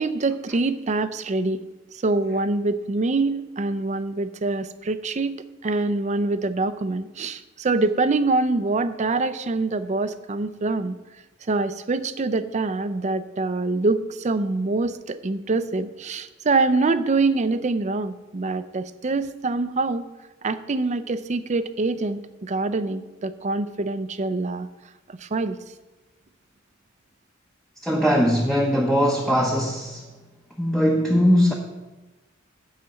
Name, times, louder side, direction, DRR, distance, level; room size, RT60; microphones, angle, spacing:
voice 1, 0.0-1.6 2.0-5.4 5.6-11.0 11.5-20.1 20.4-24.7 25.1-25.6, right 3 dB, 35° right, 12 dB, 0.5 m, -25 dB
voice 2, 27.8-30.1 30.6-31.5, equal, 5° left, -1 dB, 0.8 m, -20 dB
11.5 x 4.1 x 7.6 m, 1.1 s
head